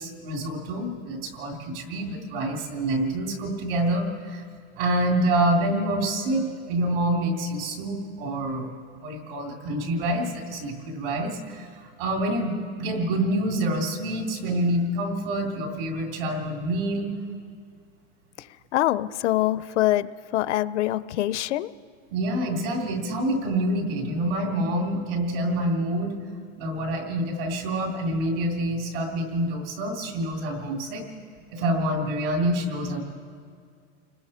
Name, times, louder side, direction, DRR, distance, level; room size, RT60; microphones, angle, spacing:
voice 1, 0.0-4.4 4.8-8.7 9.0-17.1 22.1-26.1 26.6-31.0 31.5-33.0, right 1 dB, 50° right, 1 dB, 3.3 m, -27 dB
voice 2, 18.7-21.7, left 14 dB, 70° left, 16 dB, 0.6 m, -24 dB
29.5 x 20.0 x 4.4 m, 2.2 s
supercardioid pair, 175°, 36 cm